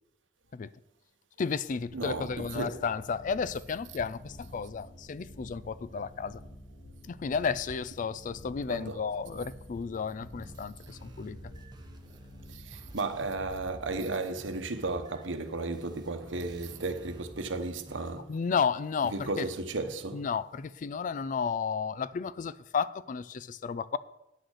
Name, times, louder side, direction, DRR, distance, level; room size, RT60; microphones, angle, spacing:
voice 1, 1.4-6.4 7.1-11.4 18.3-19.5 20.1-24.0, left 5 dB, 45° left, 0.3 m, -32 dB
sound 1, 1.8-14.0, equal, 85° left, 2.3 m, -50 dB
voice 2, 1.9-2.8 8.7-9.0 11.5-11.6 12.5-18.3 19.1-20.3, right 3 dB, 80° right, 1.0 m, -34 dB
sound 2, 10.2-18.2, right 1 dB, 25° right, 1.0 m, -51 dB
9.4 x 6.5 x 6.3 m
head